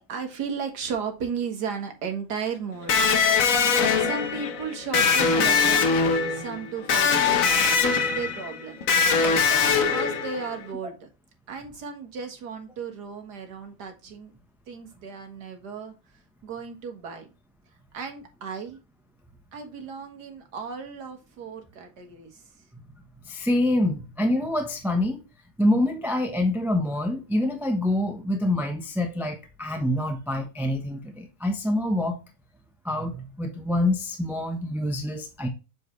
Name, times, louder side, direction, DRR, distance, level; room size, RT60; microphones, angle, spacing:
voice 1, 0.0-3.0 4.0-5.9 6.3-7.4 8.1-8.8 9.5-11.1 11.5-14.3 14.7-15.9 16.4-17.3 17.9-18.8 19.5-22.4, right 6 dB, 75° right, 2.1 m, -35 dB
Electric guitar, 2.9-10.6, left 5 dB, 60° left, 1.3 m, -22 dB
voice 2, 23.2-25.2 25.6-32.2 32.8-35.5, left 1 dB, ahead, 0.6 m, -26 dB
7.9 x 4.6 x 3.1 m
omnidirectional pair, 1.8 m